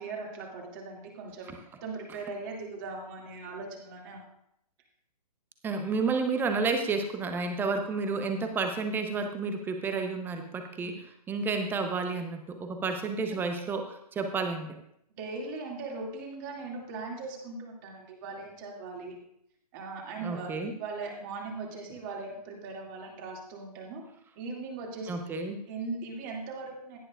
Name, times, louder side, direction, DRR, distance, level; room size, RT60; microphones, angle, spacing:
voice 1, 0.0-1.5 1.8-4.2 15.2-19.2 19.7-20.5 20.8-24.0 24.4-25.1 25.7-27.0, right 3 dB, 30° right, 0 dB, 2.5 m, -39 dB
voice 2, 5.6-14.7 20.2-20.7 25.1-25.6, right 4 dB, 10° right, 6 dB, 0.9 m, -31 dB
17.0 x 11.0 x 2.5 m, 0.73 s
figure-of-eight pair, 125°, 21 cm